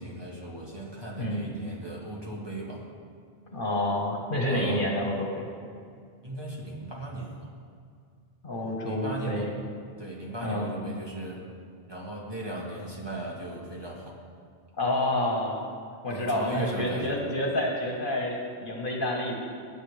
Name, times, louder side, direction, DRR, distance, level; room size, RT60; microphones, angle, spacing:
voice 1, 0.0-2.8 4.5-4.9 6.2-7.5 8.8-9.5 10.0-11.5 11.9-14.2 16.1-17.2, right 2 dB, 25° right, -4 dB, 1.9 m, -37 dB
voice 2, 3.5-5.5 8.4-9.5 10.4-10.7 14.8-15.6 16.0-19.3, left 1 dB, 55° left, -1 dB, 1.7 m, -28 dB
19.0 x 9.1 x 3.5 m, 2.2 s
omnidirectional pair, 1.1 m